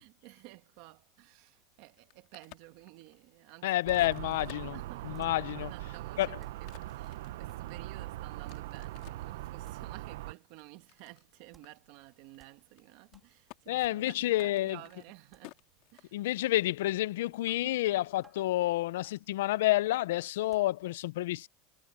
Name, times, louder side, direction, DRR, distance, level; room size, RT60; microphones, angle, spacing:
voice 1, 0.0-4.0 4.2-16.2 17.2-17.4 17.6-17.8, right 20 dB, 50° right, 1.7 m, -53 dB
Crack, 1.9-5.5 6.0-9.3 9.9-11.3 11.6-11.7 12.0-12.4 12.6-13.2 13.5-13.6 14.3-16.5, left 22 dB, 50° left, 2.8 m, -56 dB
voice 2, 3.6-4.8 5.0-5.7 6.2-6.3 13.7-14.8 16.1-21.5, left 16 dB, 80° left, 0.4 m, -29 dB
sound 1, 3.9-10.3, right 16 dB, 70° right, 0.6 m, -41 dB
sound 2, 5.1-5.6 6.0-6.1 6.4-6.8 7.5-7.8 8.5-8.8 9.6-10.0 11.5-11.8 12.4-12.8 13.1-13.5 13.8-14.1 15.3-15.4 17.5-17.8 18.2-18.5 19.0-19.2 20.5-20.8, right 6 dB, 15° right, 2.2 m, -65 dB
supercardioid pair, 170°, 0 cm